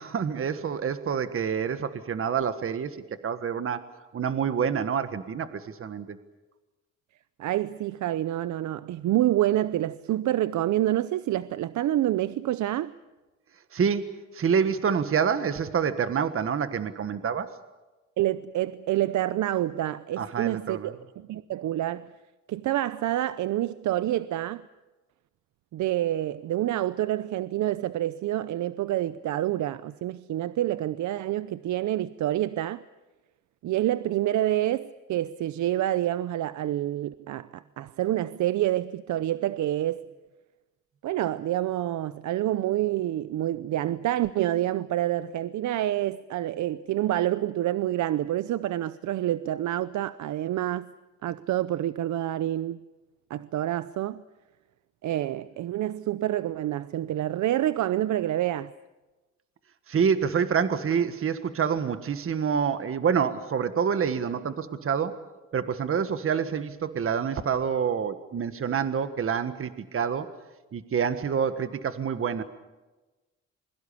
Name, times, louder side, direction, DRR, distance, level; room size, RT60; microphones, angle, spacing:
voice 1, 0.0-3.8 4.1-6.2 13.7-17.5 20.2-20.9 59.9-65.2 65.5-70.3 70.7-72.4, right 7 dB, 45° right, 1.5 m, -27 dB
voice 2, 7.4-12.9 18.2-22.1 22.5-24.6 25.7-32.8 33.6-40.0 41.0-50.9 51.2-52.8 53.3-54.2 55.0-58.7, right 13 dB, 70° right, 0.7 m, -27 dB
27.5 x 22.5 x 7.0 m
cardioid pair, 90°, 30 cm